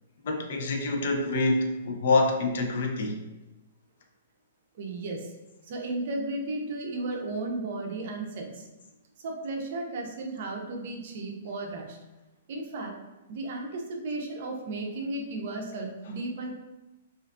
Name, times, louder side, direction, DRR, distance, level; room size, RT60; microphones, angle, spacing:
voice 1, 0.2-3.2, left 2 dB, 60° left, 3 dB, 0.4 m, -26 dB
voice 2, 4.7-5.3 5.7-8.7 9.2-12.0 12.5-13.0 13.3-16.5, right 2 dB, 50° right, 2 dB, 0.5 m, -34 dB
2.5 x 2.3 x 2.5 m, 1.0 s
hypercardioid pair, 160°, 0 cm